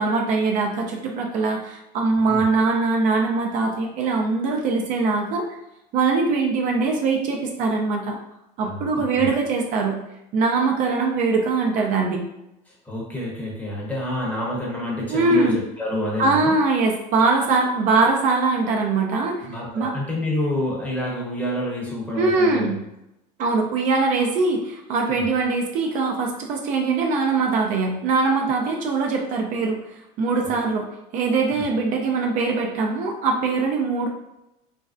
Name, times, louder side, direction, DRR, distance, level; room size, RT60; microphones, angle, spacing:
voice 1, 0.0-5.4 5.9-8.2 8.6-10.0 10.3-12.2 15.1-15.6 16.2-19.5 19.7-19.9 22.2-22.8 23.4-29.8 30.2-30.9 31.1-34.1, right 3 dB, 55° right, 1 dB, 0.5 m, -22 dB
voice 2, 8.6-9.3 12.7-16.6 19.4-22.8 25.1-25.2 30.4-30.5 31.5-31.7, left 1 dB, 10° left, -4 dB, 0.8 m, -28 dB
3.1 x 2.5 x 2.4 m, 0.87 s
cardioid pair, 140°, 16 cm